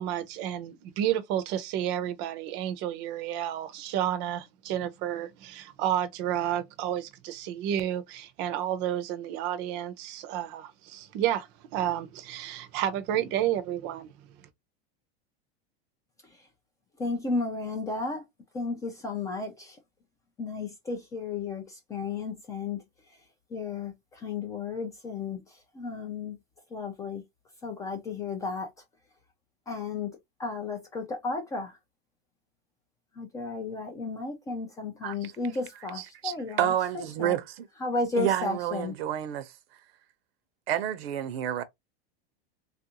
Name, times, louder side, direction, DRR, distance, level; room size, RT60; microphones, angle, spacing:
voice 1, 0.0-14.1, right 11 dB, 35° right, 0.6 m, -31 dB
voice 2, 17.0-18.2 18.5-19.8 20.4-22.8 23.5-26.4 26.7-27.2 27.6-28.7 29.7-31.8 33.2-37.4 37.8-39.0, left 3 dB, 10° left, 0.3 m, -33 dB
voice 3, 36.2-37.7 38.2-39.5 40.7-41.6, right 11 dB, 75° right, 0.7 m, -29 dB
3.4 x 2.5 x 2.8 m
supercardioid pair, 155°, 30 cm